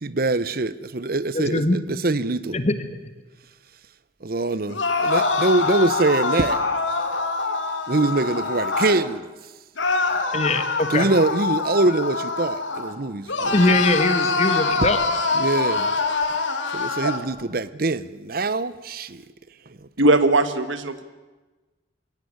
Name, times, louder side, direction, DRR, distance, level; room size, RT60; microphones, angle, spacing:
voice 1, 0.0-2.6 4.2-6.6 7.9-9.3 10.9-13.6 15.3-15.9 16.7-19.2 19.8-19.9, right 2 dB, 50° right, 0.8 m, -24 dB
voice 2, 1.3-1.8 2.5-2.7 10.3-11.1 13.5-15.0, left 2 dB, 35° left, 1.6 m, -21 dB
sound 1, 4.7-9.0 9.8-12.9 13.3-17.2, left 3 dB, 80° left, 2.6 m, -24 dB
voice 3, 20.0-21.0, right 2 dB, 90° right, 1.6 m, -19 dB
22.5 x 17.5 x 9.8 m
head